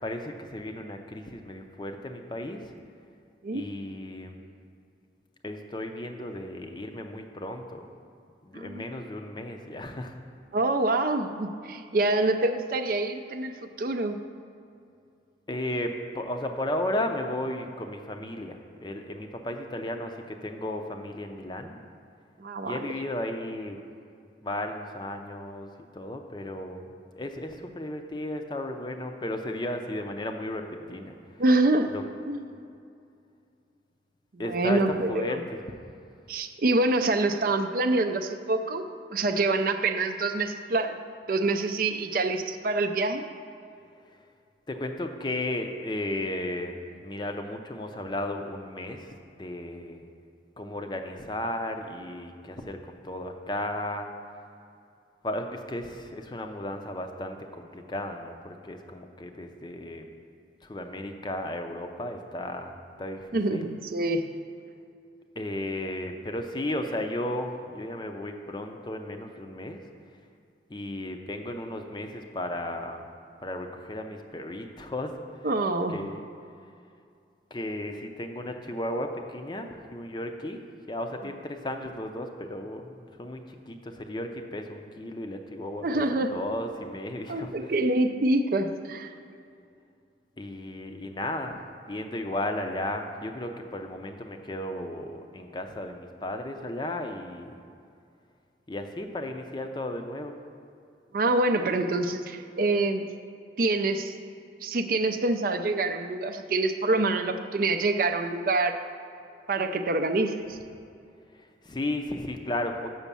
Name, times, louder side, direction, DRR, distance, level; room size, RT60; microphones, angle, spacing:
voice 1, 0.0-2.7 3.5-4.4 5.4-7.9 8.4-10.1 15.5-21.8 22.6-23.8 24.4-26.9 27.1-31.2 31.9-32.0 34.4-34.8 35.1-35.6 44.7-46.8 47.0-49.1 49.4-50.1 50.6-54.1 55.2-60.0 60.6-63.7 65.4-69.8 70.7-73.0 73.4-75.2 75.9-76.2 77.5-87.7 90.4-91.5 91.9-97.6 98.7-100.4 111.3-112.9, left 1 dB, 25° left, 5 dB, 0.5 m, -34 dB
voice 2, 8.5-8.9 10.5-13.5 13.8-14.2 22.4-22.9 31.4-31.9 32.3-32.5 34.3-35.4 36.3-41.0 41.3-43.2 63.3-64.2 75.4-76.0 85.8-86.3 87.3-89.1 101.1-103.0 103.6-104.1 104.6-108.8 109.5-110.6, right 2 dB, 50° right, 7 dB, 0.4 m, -26 dB
7.2 x 6.2 x 6.8 m, 2.4 s
head